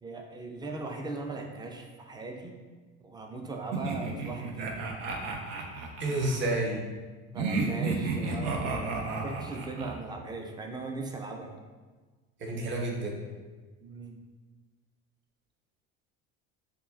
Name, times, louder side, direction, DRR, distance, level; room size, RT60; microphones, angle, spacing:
voice 1, 0.0-2.6 3.0-4.8 7.3-11.5 13.8-14.2, right 3 dB, 10° right, 3 dB, 0.4 m, -39 dB
sound 1, 3.7-6.4 7.4-10.0, right 4 dB, 80° right, 0.7 m, -32 dB
voice 2, 6.0-6.8 12.4-13.2, right 2 dB, 35° right, 0 dB, 0.9 m, -30 dB
6.5 x 2.3 x 2.4 m, 1.3 s
supercardioid pair, 90°, 34 cm